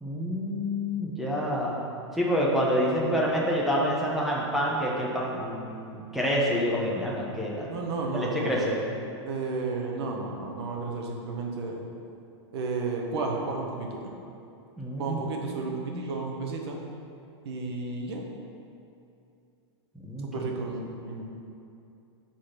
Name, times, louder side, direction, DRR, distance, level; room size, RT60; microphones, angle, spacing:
voice 1, 0.0-1.8 2.1-7.7 8.1-8.8 14.8-16.0 20.0-20.3, equal, ahead, -5 dB, 0.9 m, -28 dB
voice 2, 7.7-8.5 9.2-11.8 12.5-14.1 15.0-16.8 17.4-18.2 20.2-21.3, right 3 dB, 60° right, 0 dB, 1.3 m, -32 dB
8.1 x 4.3 x 5.9 m, 2.6 s
supercardioid pair, 160°, 15 cm